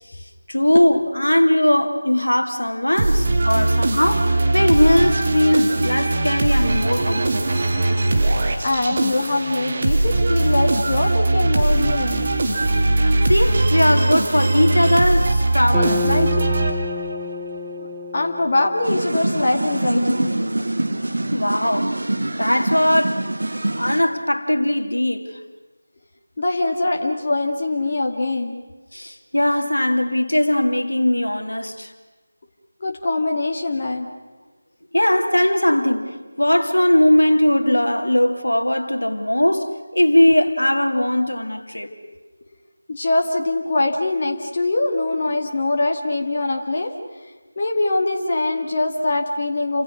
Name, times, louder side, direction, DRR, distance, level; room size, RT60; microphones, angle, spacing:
voice 1, 0.5-7.5 13.3-16.5 21.3-23.3 23.7-25.3 28.9-31.9 34.9-41.9, left 1 dB, 75° left, 2.5 m, -19 dB
sound 1, 3.0-17.2, right 2 dB, 30° right, 2.6 m, -20 dB
voice 2, 8.6-12.3 17.8-17.9 18.1-20.5 26.4-28.6 32.8-34.2 42.9-46.9 47.6-49.8, left 2 dB, 35° left, 2.1 m, -23 dB
sound 2, 15.7-20.1, left 3 dB, 5° right, 0.9 m, -30 dB
sound 3, 18.8-24.0, right 1 dB, 55° right, 1.9 m, -24 dB
30.0 x 26.5 x 6.5 m
figure-of-eight pair, 165°, 0 cm